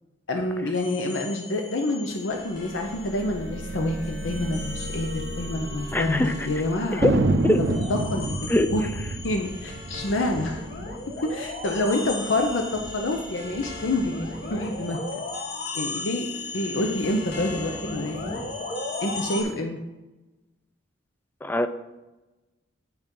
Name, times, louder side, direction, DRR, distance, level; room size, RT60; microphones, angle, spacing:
voice 1, 0.3-7.0 7.9-8.8 9.2-10.6 11.3-15.2 15.7-16.3 16.5-18.2 19.0-19.8, left 2 dB, 75° left, 3 dB, 0.7 m, -27 dB
sound 1, 0.7-3.5 3.8-19.4, left 2 dB, 55° left, 1.2 m, -37 dB
sound 2, 2.4-9.1, equal, 90° right, 1.0 m, -37 dB
voice 2, 5.9-6.3 7.0-7.6 8.5-8.7 19.4-19.5 21.4-21.7, left 1 dB, 10° left, 10 dB, 0.4 m, -23 dB
Thunder, 7.0-11.8 12.1-12.2 12.4-13.0 13.4-14.6, right 2 dB, 65° right, 0.6 m, -28 dB
9.5 x 4.0 x 5.4 m, 1.1 s
head